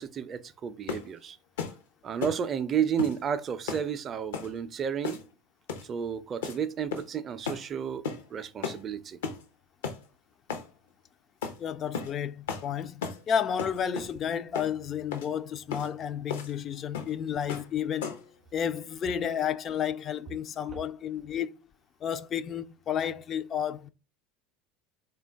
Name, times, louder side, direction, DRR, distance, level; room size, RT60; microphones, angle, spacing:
voice 1, 0.0-1.4 2.0-5.2 5.8-9.2 20.7-20.8, right 8 dB, 35° right, 0.4 m, -32 dB
sound 1, 0.9-1.1 1.6-1.8 2.2-2.4 3.0-3.2 3.7-3.9 4.3-4.5 5.0-5.3 5.7-5.9 6.4-6.6 6.9-7.2 7.5-7.6 8.0-8.2 8.6-8.8 9.2-9.4 9.8-10.0 10.5-10.7 11.4-11.6 11.9-12.1 12.5-12.7 13.0-13.2 13.6-14.1 14.5-14.7 15.1-15.3 15.7-15.9 16.3-16.5 16.9-17.2 17.5-17.7 18.0-18.3, left 6 dB, 75° left, 0.7 m, -35 dB
voice 2, 11.6-18.1 18.5-21.5 22.0-23.9, left 8 dB, 40° left, 0.3 m, -31 dB
3.7 x 2.3 x 3.4 m
hypercardioid pair, 75°, 0 cm